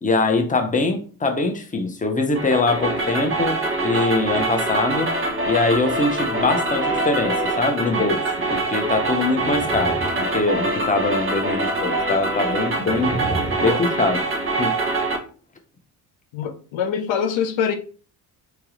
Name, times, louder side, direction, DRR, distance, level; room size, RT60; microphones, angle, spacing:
voice 1, 0.0-5.1 5.4-8.2 8.5-13.2 13.6-14.2 14.6-14.7, left 3 dB, 15° left, 0.8 m, -23 dB
sound 1, 2.3-15.2, right 2 dB, 25° right, 1.1 m, -24 dB
sound 2, 9.1-10.9 12.7-13.7, right 1 dB, ahead, 1.3 m, -31 dB
voice 2, 16.3-17.7, left 7 dB, 65° left, 0.7 m, -24 dB
3.4 x 3.0 x 3.0 m
supercardioid pair, 60°, 49 cm